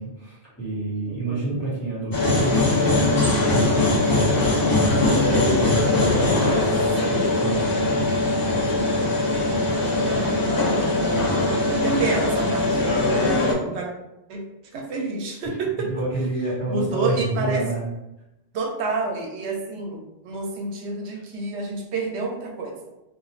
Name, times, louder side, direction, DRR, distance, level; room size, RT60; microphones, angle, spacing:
voice 1, 0.0-10.2 11.0-11.4 13.4-13.5 15.8-17.9, right 2 dB, 15° left, -10 dB, 1.2 m, -31 dB
voice 2, 1.1-1.6 7.0-7.3 9.5-10.8 11.4-13.9 14.3-14.4 14.7-15.9 16.7-17.6 18.5-22.8, right 3 dB, 85° right, 1 dB, 0.8 m, -29 dB
sound 1, 2.1-13.5, left 2 dB, 30° left, 0.4 m, -21 dB
2.4 x 2.4 x 3.0 m, 0.91 s
omnidirectional pair, 1.1 m